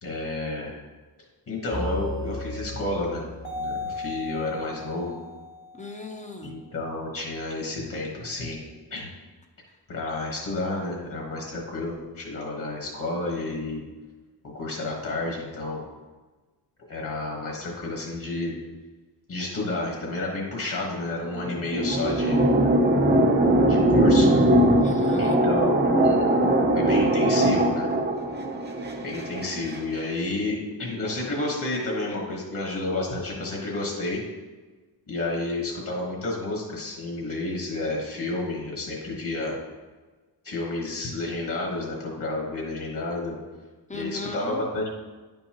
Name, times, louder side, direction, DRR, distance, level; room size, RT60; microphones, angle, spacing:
voice 1, 0.0-0.7 1.5-3.3 3.5-5.2 6.4-8.6 8.9-9.1 9.9-13.9 14.5-15.8 16.9-18.5 19.3-22.4 23.6-24.4 25.2-26.3 26.7-27.9 29.0-34.2 35.1-39.5 40.4-43.4 43.9-44.9, left 2 dB, 50° left, -2 dB, 1.4 m, -30 dB
sound 1, 1.7-6.4, left 2 dB, 85° left, 2.3 m, -35 dB
voice 2, 5.8-6.5 24.8-25.4 43.9-44.6, left 2 dB, 20° left, 3 dB, 0.5 m, -36 dB
sound 2, 21.2-29.8, right 1 dB, 25° right, 0.6 m, -21 dB
9.9 x 5.4 x 2.9 m, 1.3 s
wide cardioid pair, 180°, 41 cm